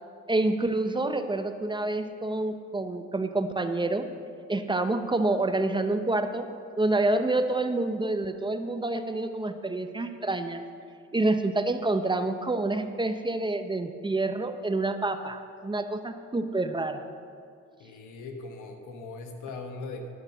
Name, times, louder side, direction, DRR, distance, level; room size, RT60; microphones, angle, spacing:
voice 1, 0.3-4.1 4.5-6.5 6.8-10.6 11.1-17.0, right 2 dB, 15° right, 8 dB, 0.6 m, -28 dB
voice 2, 17.8-20.1, left 3 dB, 85° left, 4 dB, 1.2 m, -40 dB
11.5 x 5.9 x 6.7 m, 2.2 s
cardioid pair, 90°, 30 cm